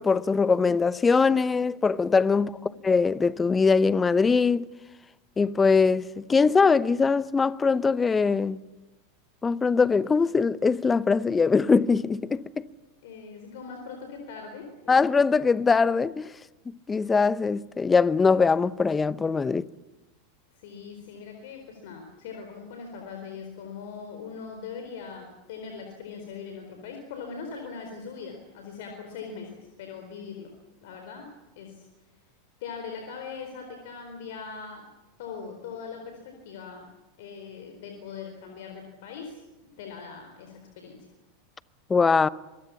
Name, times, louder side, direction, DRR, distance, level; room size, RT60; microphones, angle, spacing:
voice 1, 0.0-4.7 5.4-8.6 9.4-12.4 14.9-16.3 16.7-19.7 41.9-42.3, left 4 dB, 20° left, 0.9 m, -22 dB
voice 2, 13.0-15.0 20.5-30.5 30.8-31.8 32.6-34.9 35.2-36.8 37.2-41.0, left 5 dB, 65° left, 4.3 m, -41 dB
26.0 x 23.0 x 7.2 m
hypercardioid pair, 90°, 0 cm